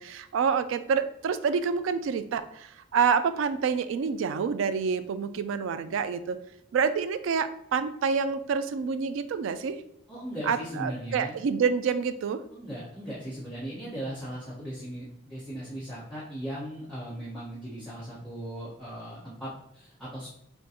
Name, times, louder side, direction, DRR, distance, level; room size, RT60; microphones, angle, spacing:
voice 1, 0.0-6.4 6.7-9.8 10.4-12.4, right 6 dB, 80° right, 12 dB, 0.3 m, -27 dB
voice 2, 10.1-11.4 12.5-20.3, equal, 5° right, -12 dB, 1.1 m, -38 dB
6.3 x 2.3 x 2.9 m, 0.76 s
head